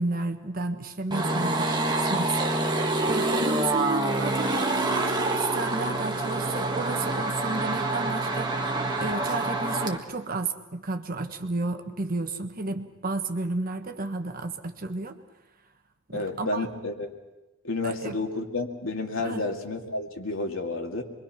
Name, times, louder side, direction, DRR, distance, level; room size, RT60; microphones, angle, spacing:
voice 1, 0.0-2.6 3.0-15.2 16.1-16.7 17.8-18.2 19.2-19.4, right 3 dB, 45° right, 6 dB, 1.4 m, -32 dB
sound 1, 1.1-10.0, right 2 dB, 20° right, 1.8 m, -26 dB
voice 2, 16.1-17.1 17.6-21.0, left 2 dB, 90° left, 3 dB, 2.4 m, -30 dB
26.0 x 22.5 x 5.9 m, 1.0 s
head